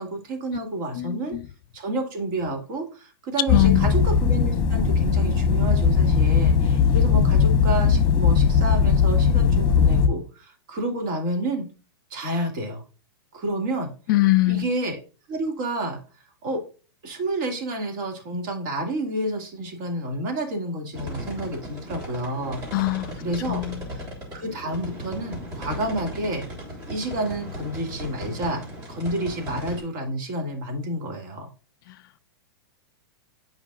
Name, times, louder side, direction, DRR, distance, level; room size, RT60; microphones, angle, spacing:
voice 1, 0.0-1.4 1.7-11.7 12.1-12.8 13.3-13.9 14.5-15.0 15.3-16.0 16.4-16.6 17.0-22.6 23.2-23.6 23.9-24.0 24.3-26.4 26.9-31.5, right 1 dB, 50° right, 2.2 m, -29 dB
voice 2, 1.0-1.4 3.5-3.9 14.1-14.7 22.7-23.1 23.5-23.8, left 19 dB, 55° left, 0.4 m, -22 dB
sound 1, 3.5-10.1, left 6 dB, 35° left, 1.0 m, -19 dB
sound 2, 20.9-29.8, equal, 30° right, 3.2 m, -36 dB
8.3 x 5.2 x 2.4 m
hypercardioid pair, 135°, 14 cm